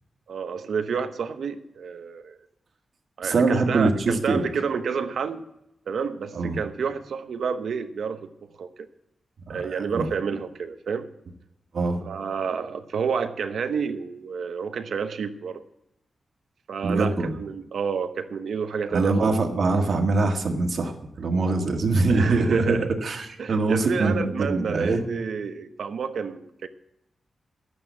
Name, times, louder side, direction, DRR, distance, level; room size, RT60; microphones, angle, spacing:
voice 1, 0.3-2.4 3.2-5.5 5.9-8.3 8.6-8.9 9.5-11.1 12.0-15.6 16.7-19.4 22.1-23.0 23.4-26.7, right 6 dB, 85° right, 8 dB, 0.9 m, -29 dB
voice 2, 3.2-4.4 6.4-6.6 9.5-10.1 11.7-12.0 16.8-17.4 18.9-25.0, right 3 dB, 70° right, 3 dB, 1.8 m, -23 dB
11.0 x 8.8 x 8.4 m, 0.83 s
wide cardioid pair, 95°, 0 cm